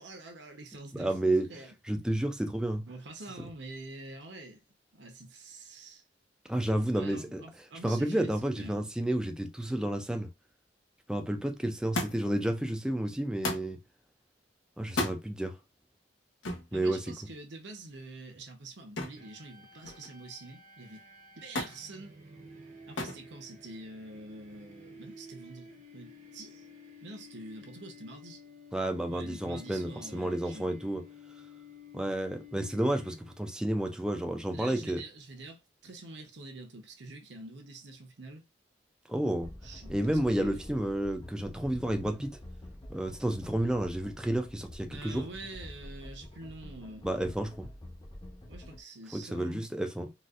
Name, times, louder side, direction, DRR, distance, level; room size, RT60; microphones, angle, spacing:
voice 1, 0.0-1.7 2.9-4.6 4.9-6.0 6.9-8.9 16.7-21.0 21.4-22.2 22.9-26.6 27.0-28.4 29.1-30.8 34.5-38.4 39.6-40.6 44.9-47.2 48.5-49.6, right 2 dB, 70° right, 0.9 m, -46 dB
voice 2, 0.9-1.5 1.9-2.8 6.5-7.4 7.8-10.3 11.1-13.8 14.8-15.6 16.7-17.2 28.7-31.0 31.9-35.0 39.1-39.5 39.9-42.4 42.9-45.3 47.0-47.7 49.1-50.1, right 1 dB, 5° right, 0.4 m, -31 dB
Thump thud, 11.9-12.4 13.4-13.7 14.8-15.2 16.4-16.7 19.0-19.3 19.6-20.2 21.6-21.8 23.0-23.2 24.2-24.7 25.6-25.7, left 2 dB, 85° left, 1.0 m, -34 dB
sound 1, 19.2-33.6, left 2 dB, 40° right, 0.8 m, -52 dB
sound 2, 39.4-48.8, left 1 dB, 25° left, 0.7 m, -47 dB
4.1 x 2.4 x 2.4 m
head